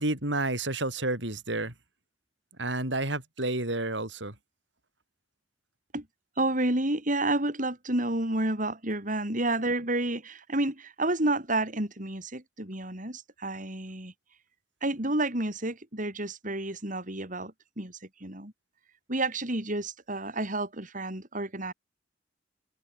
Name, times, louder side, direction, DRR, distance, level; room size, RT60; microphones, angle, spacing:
voice 1, 0.0-1.7 2.6-4.3, right 2 dB, 85° right, 7.8 m, -30 dB
voice 2, 6.4-14.1 14.8-18.5 19.1-21.7, right 2 dB, 45° right, 7.1 m, -30 dB
head